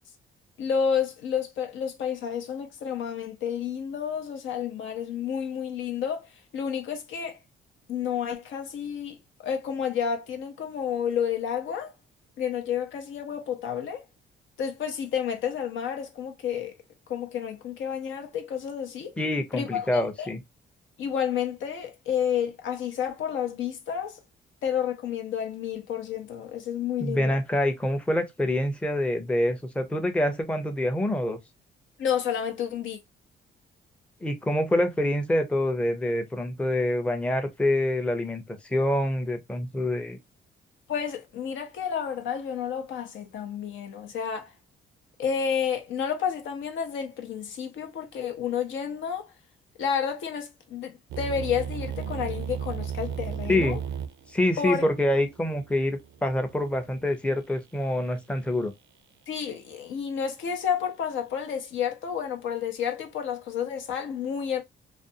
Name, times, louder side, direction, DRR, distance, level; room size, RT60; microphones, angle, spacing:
voice 1, 0.6-6.3 6.5-7.4 7.9-11.9 12.4-14.0 14.6-16.7 17.1-19.1 19.5-20.3 21.0-24.2 24.6-27.4 32.0-33.0 40.9-44.5 45.2-49.3 49.8-53.8 54.6-54.9 59.3-64.6, left 8 dB, 75° left, 0.7 m, -30 dB
voice 2, 19.2-20.4 27.0-31.4 34.2-40.2 53.5-53.8 54.3-58.7, left 1 dB, 5° left, 0.5 m, -26 dB
sound 1, 51.1-57.0, right 8 dB, 70° right, 0.4 m, -35 dB
2.5 x 2.3 x 2.5 m
cardioid pair, 90°, 20 cm